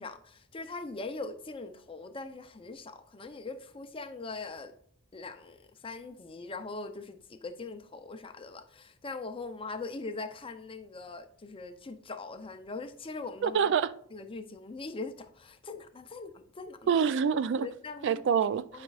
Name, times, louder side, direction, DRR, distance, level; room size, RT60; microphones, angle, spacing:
voice 1, 0.0-4.7 5.1-13.7 14.1-16.9 17.6-18.2 18.7-18.8, left 3 dB, 25° left, 0.5 m, -41 dB
voice 2, 13.4-13.9 16.9-17.7 18.0-18.8, right 7 dB, 55° right, 0.3 m, -26 dB
9.4 x 5.1 x 2.4 m
head